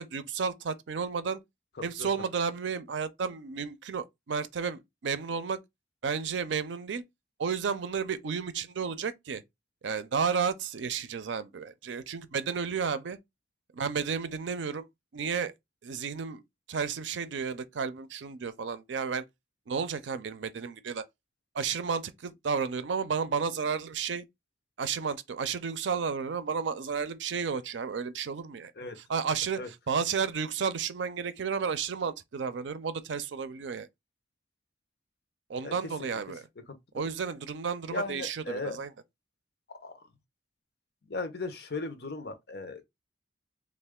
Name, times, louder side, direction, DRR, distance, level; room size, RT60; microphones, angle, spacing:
voice 1, 0.0-1.4 1.8-5.6 6.0-7.0 7.4-9.4 9.8-13.2 13.7-14.9 15.1-15.5 15.8-16.4 16.7-19.2 19.7-21.0 21.5-24.2 24.8-28.7 29.0-33.9 35.5-36.5 36.9-38.9, right 6 dB, 85° right, 0.5 m, -32 dB
voice 2, 37.9-38.8 39.8-39.9 41.1-42.8, left 3 dB, 65° left, 0.8 m, -36 dB
3.2 x 2.5 x 3.6 m
head